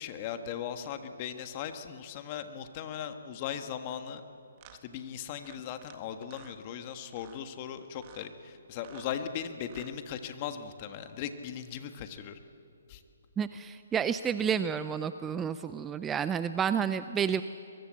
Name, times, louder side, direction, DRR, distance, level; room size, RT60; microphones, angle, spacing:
voice 1, 0.0-4.2 4.8-12.4 12.9-13.0, left 8 dB, 30° left, 8 dB, 1.5 m, -38 dB
sound 1, 3.8-4.0 4.6-4.8 5.4-6.0 6.2-6.6 7.1-7.4 7.9-8.3 8.7-9.1 9.6-10.0, right 11 dB, 30° right, 1.7 m, -54 dB
voice 2, 13.4-17.4, right 7 dB, 10° right, 12 dB, 0.5 m, -30 dB
22.5 x 22.0 x 7.6 m, 2.6 s
hypercardioid pair, 155°, 0 cm